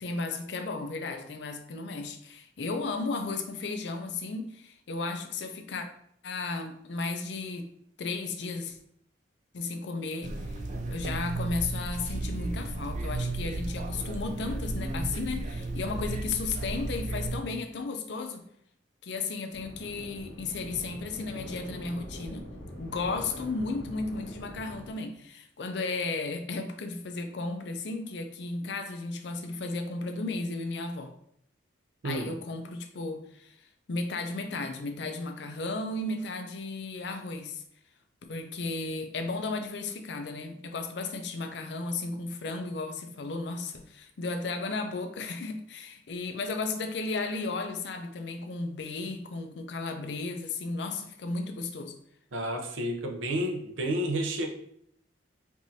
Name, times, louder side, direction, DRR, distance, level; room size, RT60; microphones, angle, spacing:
voice 1, 0.0-5.9 6.2-7.7 8.0-8.8 9.5-10.6 10.9-18.4 19.0-22.5 22.8-31.1 32.0-37.6 38.3-52.0, left 3 dB, 65° left, 0.5 m, -34 dB
sound 1, 10.2-17.4, right 2 dB, 40° right, 0.4 m, -34 dB
sound 2, 19.5-24.9, equal, 80° left, 1.5 m, -43 dB
voice 2, 52.3-54.5, right 1 dB, 85° right, 0.7 m, -30 dB
4.7 x 2.6 x 2.7 m
head